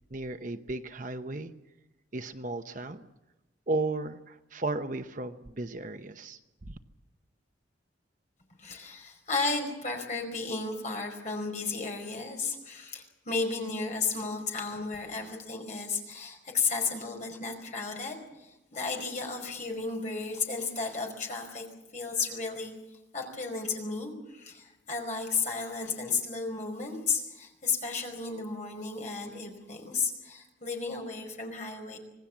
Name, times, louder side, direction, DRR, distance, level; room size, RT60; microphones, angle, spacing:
voice 1, 0.1-1.5 2.1-3.1 3.7-6.4 6.7-6.8, right 2 dB, 40° right, 8 dB, 0.9 m, -34 dB
voice 2, 8.6-21.7 21.9-22.7 23.1-32.0, left 4 dB, 40° left, 2 dB, 5.0 m, -33 dB
26.5 x 18.5 x 7.4 m, 1.0 s
head